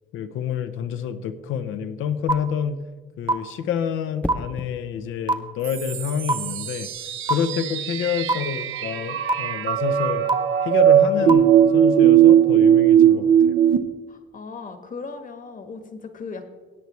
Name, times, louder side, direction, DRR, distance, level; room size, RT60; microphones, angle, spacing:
voice 1, 0.1-2.8 3.2-6.9 7.3-10.3 10.6-13.6, left 8 dB, 85° left, 11 dB, 0.7 m, -28 dB
sound 1, 2.3-2.4 3.3-3.4 4.3-4.4 5.3-5.4 6.3-6.4 7.3-7.4 8.3-8.4 9.3-9.4 10.3-10.4 11.3-11.4, right 2 dB, 25° right, 1.0 m, -19 dB
dropping of phone, 4.2-4.8 6.7-7.0, left 1 dB, 5° left, 0.6 m, -33 dB
sound 2, 5.6-13.8, right 10 dB, 85° right, 0.7 m, -18 dB
voice 2, 14.1-16.5, left 4 dB, 40° left, 7 dB, 1.3 m, -37 dB
17.0 x 8.1 x 3.1 m, 1.5 s
cardioid pair, 90°, 20 cm